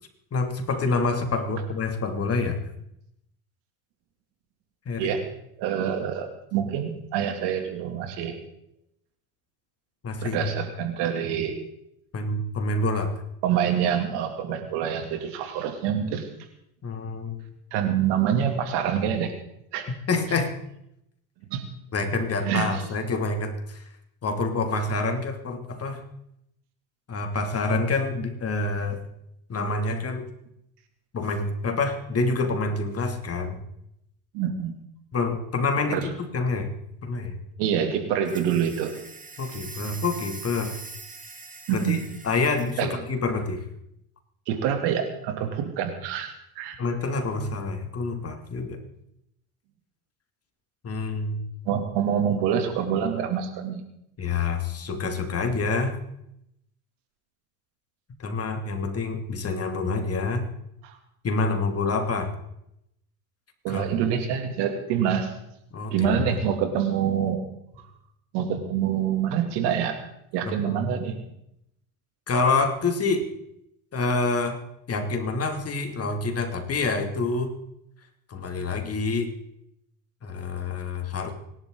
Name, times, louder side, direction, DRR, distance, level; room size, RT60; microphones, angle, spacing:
voice 1, 0.3-2.6 4.9-5.1 10.0-10.5 12.1-13.1 16.8-17.4 20.1-20.6 21.9-23.8 24.2-26.0 27.1-29.0 29.5-30.3 31.1-33.6 35.1-36.7 37.0-37.4 39.4-40.8 41.7-42.0 42.2-43.6 46.8-48.8 50.8-51.4 54.2-56.0 58.2-60.4 61.2-62.3 63.7-63.9 65.7-66.4 70.5-70.8 72.3-73.3 73.9-74.6 74.9-77.5 78.3-79.3 80.2-81.3, left 3 dB, 35° left, 5 dB, 2.8 m, -27 dB
voice 2, 5.6-8.4 10.2-11.6 13.4-16.3 17.7-19.3 19.7-19.9 21.5-21.6 22.4-22.8 34.3-34.7 35.9-36.1 37.6-38.9 41.7-42.1 42.8-42.9 44.5-46.8 51.6-53.8 60.8-61.0 63.6-65.3 65.9-67.5 68.3-70.0 70.3-71.2, right 8 dB, 70° right, 5 dB, 3.0 m, -26 dB
sound 1, 38.2-42.9, right 4 dB, 20° right, 1.9 m, -42 dB
25.5 x 11.5 x 4.0 m, 0.78 s
supercardioid pair, 90°, 42 cm